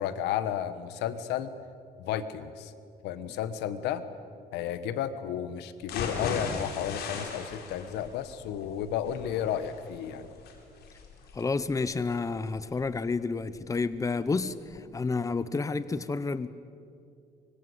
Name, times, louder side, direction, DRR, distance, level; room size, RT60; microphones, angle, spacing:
voice 1, 0.0-1.5 2.0-2.7 3.0-4.0 4.5-10.3, left 10 dB, 85° left, 1.4 m, -32 dB
sound 1, 5.8-13.8 14.2-14.3 14.7-14.8, left 5 dB, 70° left, 4.5 m, -39 dB
voice 2, 11.3-16.5, left 4 dB, 20° left, 0.9 m, -30 dB
25.0 x 24.5 x 8.1 m
cardioid pair, 110°, 17 cm